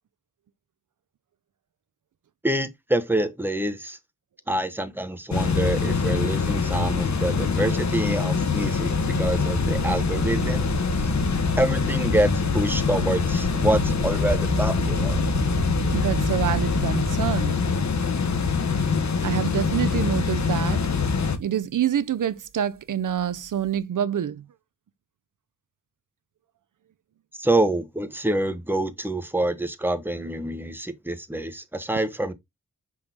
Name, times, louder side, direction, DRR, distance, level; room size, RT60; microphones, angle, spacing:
voice 1, 2.4-4.0 4.5-10.7 11.6-15.2 27.3-32.3, right 1 dB, 5° right, 1.2 m, -26 dB
sound 1, 5.3-21.4, left 5 dB, 60° left, 1.2 m, -24 dB
sound 2, 8.9-17.8 18.5-18.9 19.4-19.5 23.1-23.8, right 5 dB, 45° right, 0.8 m, -32 dB
voice 2, 15.9-17.6 19.2-20.9 21.4-24.4, right 9 dB, 75° right, 0.6 m, -26 dB
6.3 x 5.3 x 2.8 m
wide cardioid pair, 75°, 32 cm